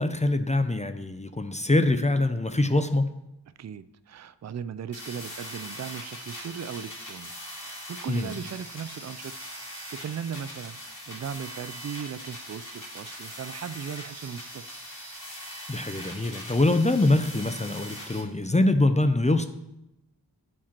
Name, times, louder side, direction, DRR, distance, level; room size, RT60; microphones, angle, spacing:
voice 1, 0.0-3.1 8.1-8.3 15.7-19.5, left 2 dB, 15° left, 9 dB, 0.5 m, -24 dB
voice 2, 3.6-9.3 9.6-14.7, right 8 dB, 40° right, 15 dB, 0.4 m, -38 dB
sound 1, 4.9-18.2, equal, 45° left, 2.6 m, -41 dB
7.4 x 4.4 x 5.9 m, 0.89 s
cardioid pair, 40°, 42 cm